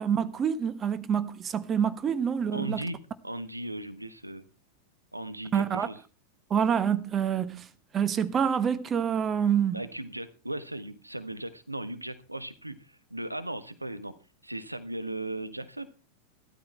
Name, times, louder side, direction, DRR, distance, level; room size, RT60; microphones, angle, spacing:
voice 1, 0.0-2.9 5.5-5.9 6.5-7.7 7.9-9.8, right 8 dB, 25° right, 1.2 m, -27 dB
voice 2, 2.5-4.5 5.1-6.0 9.7-14.1 14.4-15.9, right 1 dB, 85° right, 1.3 m, -37 dB
15.0 x 13.0 x 4.4 m
figure-of-eight pair, 90°, 0 cm